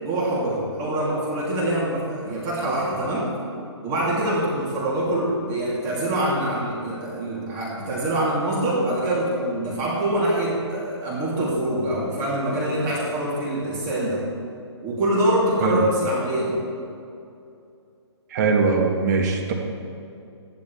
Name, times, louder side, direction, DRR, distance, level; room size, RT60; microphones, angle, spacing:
voice 1, 0.0-3.3 3.8-14.2 14.8-16.6, right 1 dB, 20° right, -6 dB, 2.9 m, -24 dB
voice 2, 18.3-19.5, right 4 dB, 40° right, 1 dB, 1.7 m, -21 dB
14.5 x 12.0 x 3.4 m, 2.5 s
hypercardioid pair, 150°, 15 cm